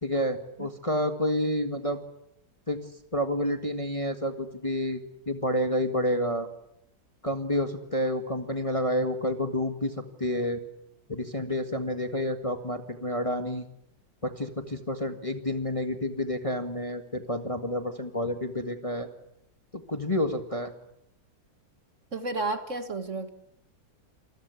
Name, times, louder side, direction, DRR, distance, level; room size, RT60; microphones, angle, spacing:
voice 1, 0.0-2.0 2.7-2.8 3.1-6.5 7.2-10.6 11.1-13.7 14.2-19.1 19.7-20.7, left 1 dB, 20° left, 6 dB, 1.7 m, -29 dB
voice 2, 22.1-23.3, right 2 dB, 40° right, 8 dB, 2.1 m, -31 dB
28.0 x 22.0 x 8.3 m, 0.79 s
omnidirectional pair, 2.0 m